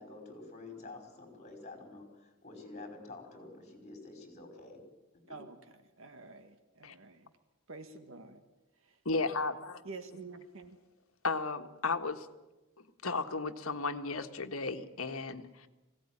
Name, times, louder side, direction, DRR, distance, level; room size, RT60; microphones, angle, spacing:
voice 1, 0.0-4.8 5.3-5.4, left 3 dB, 30° left, 4 dB, 5.2 m, -48 dB
voice 2, 6.0-7.3 7.7-8.4 8.8-9.0 9.8-10.8, right 3 dB, 65° right, 9 dB, 1.6 m, -48 dB
voice 3, 9.0-9.8 11.2-12.3 13.0-15.7, left 3 dB, 75° left, 7 dB, 1.5 m, -34 dB
20.5 x 17.0 x 9.9 m, 1.1 s
head